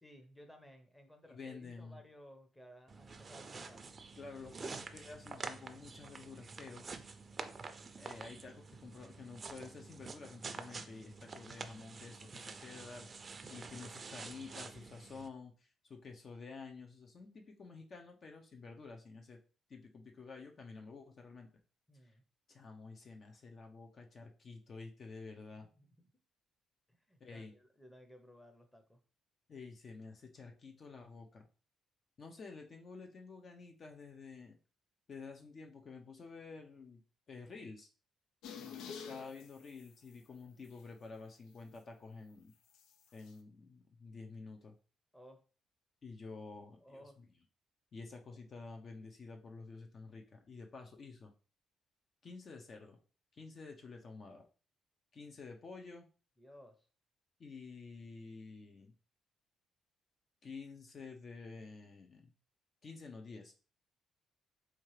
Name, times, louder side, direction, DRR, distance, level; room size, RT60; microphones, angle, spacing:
voice 1, 0.0-3.9 21.9-22.2 25.8-26.1 26.9-29.0 38.5-38.8 45.1-45.4 46.8-47.2 56.4-56.9, equal, 10° left, 5 dB, 0.8 m, -58 dB
voice 2, 1.3-2.0 4.2-6.9 8.0-13.1 13.5-19.4 19.7-21.5 22.0-22.1 22.5-25.7 27.2-27.5 29.5-31.5 32.2-34.6 35.1-37.0 37.3-37.9 39.1-42.5 43.1-44.7 46.0-47.2 47.9-51.3 52.2-53.0 53.3-54.4 55.1-56.1 57.4-58.9 60.4-62.3 62.8-63.5, left 4 dB, 45° left, 2 dB, 0.7 m, -50 dB
sound 1, 2.9-15.3, right 4 dB, 35° right, 0.5 m, -48 dB
sound 2, 38.4-40.1 40.6-40.8 42.7-43.3, left 6 dB, 90° left, 0.4 m, -48 dB
4.3 x 2.4 x 3.2 m, 0.36 s
cardioid pair, 90°, 0 cm